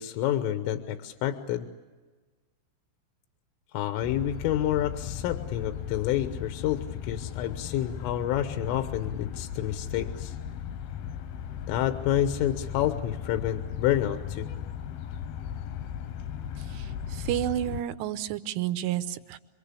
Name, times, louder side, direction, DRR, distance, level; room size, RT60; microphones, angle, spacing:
voice 1, 0.0-1.7 3.7-10.4 11.7-14.5, left 11 dB, 90° left, 8 dB, 3.7 m, -29 dB
sound 1, 4.0-17.8, left 9 dB, 75° left, 2.3 m, -37 dB
voice 2, 16.7-19.4, right 13 dB, 80° right, 11 dB, 3.5 m, -31 dB
27.0 x 24.0 x 8.4 m, 1.3 s
omnidirectional pair, 5.6 m